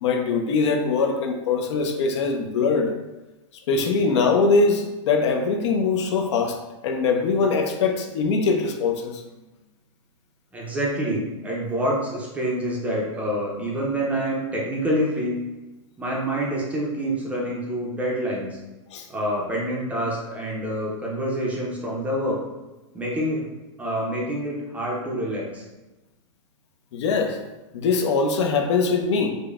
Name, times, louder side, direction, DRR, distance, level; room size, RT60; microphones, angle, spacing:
voice 1, 0.0-2.9 3.7-6.6 6.8-9.2 18.9-19.0 26.9-27.4 27.7-29.3, left 4 dB, 60° left, 4 dB, 0.5 m, -22 dB
voice 2, 10.5-15.3 16.0-18.6 19.1-22.4 22.9-23.4 23.8-25.6, equal, 10° right, -3 dB, 0.5 m, -27 dB
5.0 x 2.1 x 2.3 m, 1.1 s
supercardioid pair, 150°, 16 cm